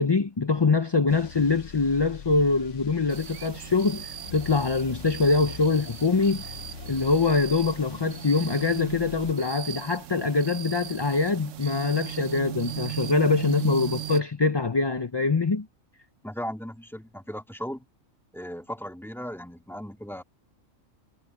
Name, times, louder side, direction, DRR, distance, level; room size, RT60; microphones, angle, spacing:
voice 1, 0.0-6.4 6.9-15.7, left 4 dB, 30° left, 0.5 m, -24 dB
sound 1, 1.1-9.3, left 7 dB, 65° left, 1.2 m, -43 dB
sound 2, 3.1-14.2, right 13 dB, 65° right, 1.1 m, -38 dB
voice 2, 16.2-17.8 18.3-20.2, equal, ahead, 2.1 m, -37 dB
omnidirectional pair, 1.4 m